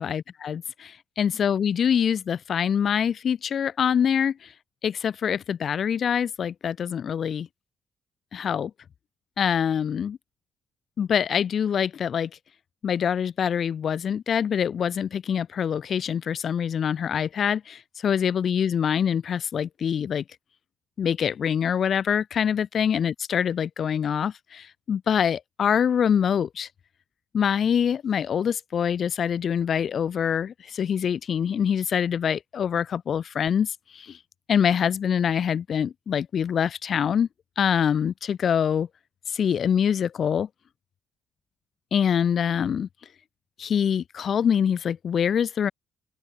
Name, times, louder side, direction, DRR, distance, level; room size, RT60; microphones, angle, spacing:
voice 1, 0.0-4.5 4.8-7.5 8.3-8.7 9.4-10.2 11.0-12.3 12.8-20.2 21.0-26.7 27.3-34.2 34.5-37.3 37.6-38.9 39.3-40.5 41.9-42.9 43.6-45.7, left 8 dB, 55° left, 0.5 m, -25 dB
open air
cardioid pair, 90°, 0 cm